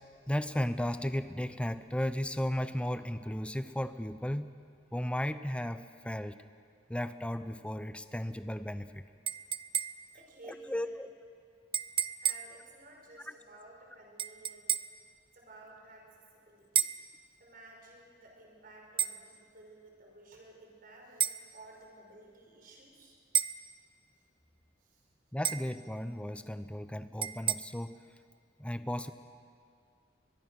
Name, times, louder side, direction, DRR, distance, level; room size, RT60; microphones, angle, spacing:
voice 1, 0.3-4.5 4.9-6.4 6.9-9.0 10.4-11.1 13.3-13.4 25.3-28.0 28.6-29.1, equal, 5° left, 11 dB, 0.7 m, -35 dB
sound 1, 9.3-10.2 11.7-12.6 14.2-15.0 16.8-17.1 19.0-19.2 21.2-21.4 23.3-23.7 25.4-25.8 27.2-27.6, right 9 dB, 30° right, 0.5 m, -32 dB
voice 2, 10.1-11.0 12.2-14.7 15.3-16.9 17.4-23.2 24.8-25.0, right 2 dB, 50° right, 1 dB, 4.8 m, -54 dB
22.5 x 21.5 x 6.1 m, 2.2 s
head